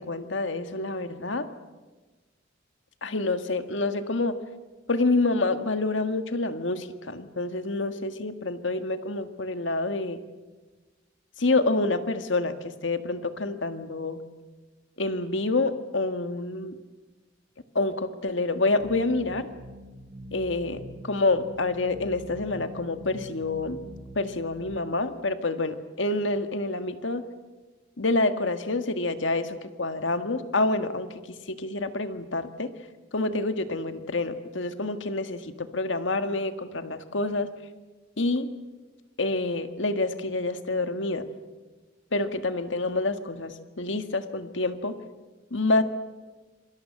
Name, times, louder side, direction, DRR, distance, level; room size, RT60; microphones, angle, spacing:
voice 1, 0.0-1.5 3.0-4.4 4.9-10.2 11.4-14.2 15.0-16.8 17.8-19.5 20.3-23.8 24.2-27.2 28.0-31.1 31.5-32.7 33.1-37.5 38.2-38.5 39.2-41.2 42.1-45.0 45.5-45.8, left 2 dB, 75° left, 9 dB, 1.7 m, -27 dB
sound 1, 18.8-24.8, equal, 50° right, 2.8 m, -44 dB
27.5 x 24.5 x 7.6 m, 1.3 s
head